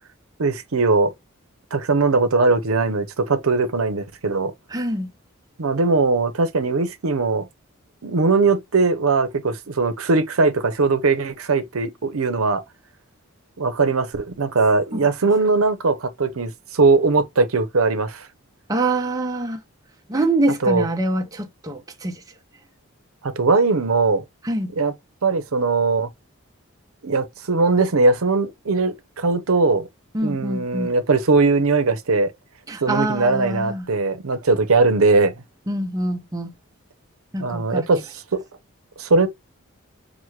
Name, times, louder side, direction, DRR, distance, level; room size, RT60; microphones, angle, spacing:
voice 1, 0.4-1.1 1.7-4.5 5.6-7.5 8.0-12.6 13.6-18.3 20.6-20.9 23.2-24.2 24.8-24.9 25.2-26.1 27.0-29.9 30.2-32.3 32.8-35.3 37.4-38.0 38.3-38.4 39.0-39.3, right 3 dB, 80° right, 0.7 m, -20 dB
voice 2, 4.7-5.1 14.9-15.1 18.7-19.6 20.1-22.2 24.4-24.7 30.1-30.9 32.7-33.9 35.7-36.5 37.3-37.9, right 2 dB, 15° right, 0.6 m, -25 dB
6.0 x 2.1 x 3.2 m
head